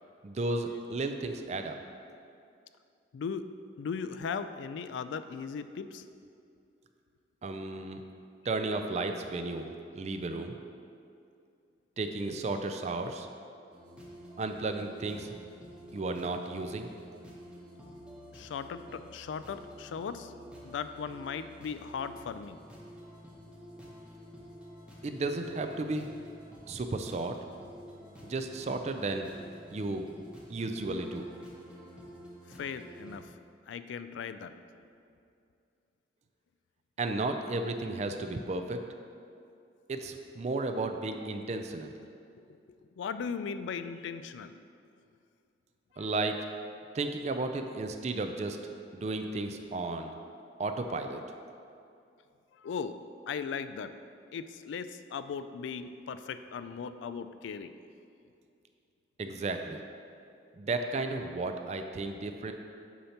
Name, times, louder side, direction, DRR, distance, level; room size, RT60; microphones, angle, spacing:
voice 1, 0.2-1.8 7.4-8.0 8.5-9.7 9.9-10.6 12.0-13.3 14.4-15.3 15.9-16.9 25.0-26.1 26.7-27.4 28.2-29.3 29.7-30.1 30.5-31.3 37.0-38.8 39.9-41.9 46.0-46.4 46.9-48.6 48.9-50.1 50.6-51.2 59.2-59.8 60.5-62.5, right 2 dB, 40° right, 6 dB, 0.4 m, -33 dB
voice 2, 3.1-3.5 3.8-6.0 18.3-20.3 20.6-22.6 32.5-33.4 33.7-34.5 42.5-42.6 43.0-44.6 45.9-46.1 52.5-53.0 53.3-53.9 54.3-57.8, left 6 dB, 85° left, 11 dB, 0.3 m, -38 dB
sound 1, 13.7-33.2, equal, 5° right, 0.9 m, -50 dB
8.4 x 2.9 x 5.7 m, 2.5 s
head